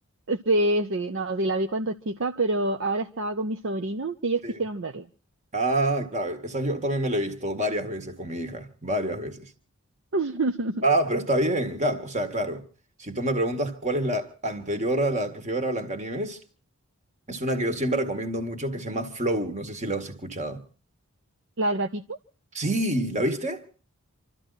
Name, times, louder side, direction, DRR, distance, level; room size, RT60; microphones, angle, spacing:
voice 1, 0.3-5.1 10.1-10.8 21.6-22.2, right 2 dB, 55° right, 0.7 m, -26 dB
voice 2, 5.5-9.5 10.8-12.6 13.0-16.4 17.3-20.6 22.5-23.7, right 1 dB, 30° right, 1.8 m, -27 dB
27.0 x 13.0 x 4.1 m
head